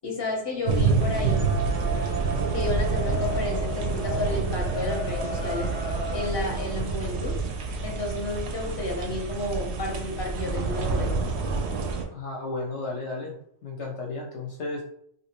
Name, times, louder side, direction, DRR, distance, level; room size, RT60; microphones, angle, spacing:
voice 1, 0.0-1.5 2.5-5.7 6.1-7.3 7.8-11.2, left 2 dB, 25° left, -1 dB, 0.7 m, -32 dB
sound 1, 0.7-12.0, right 4 dB, 65° right, 0.7 m, -28 dB
sound 2, 1.3-6.3, equal, 15° right, 0.4 m, -34 dB
voice 2, 12.1-13.3 13.6-14.8, left 3 dB, 65° left, -1 dB, 0.8 m, -33 dB
2.8 x 2.8 x 2.9 m, 0.67 s
omnidirectional pair, 1.4 m